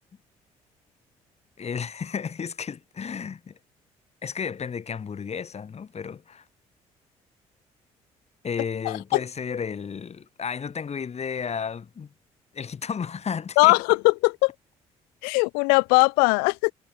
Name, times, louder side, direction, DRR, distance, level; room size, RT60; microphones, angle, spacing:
voice 1, 1.6-3.6 4.2-6.4 8.4-12.1 12.5-13.8, left 6 dB, 45° left, 4.7 m, -33 dB
voice 2, 8.8-9.2 13.6-14.5 15.2-16.7, left 34 dB, 90° left, 0.7 m, -20 dB
supercardioid pair, 60°, 15 cm